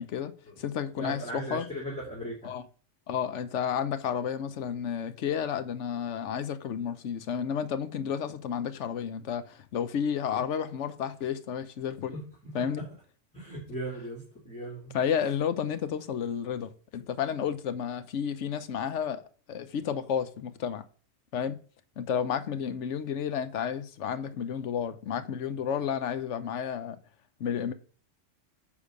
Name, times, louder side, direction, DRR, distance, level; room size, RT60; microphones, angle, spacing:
voice 1, 0.0-1.7 2.4-2.6 3.1-12.2 12.5-12.8 14.9-19.2 19.5-20.8 21.3-21.6 22.0-27.0 27.4-27.7, left 8 dB, 70° left, 1.1 m, -31 dB
voice 2, 0.9-2.5 12.1-12.2 12.5-12.6 13.3-14.8, right 1 dB, 5° left, 2.5 m, -37 dB
9.8 x 3.5 x 6.5 m
omnidirectional pair, 1.3 m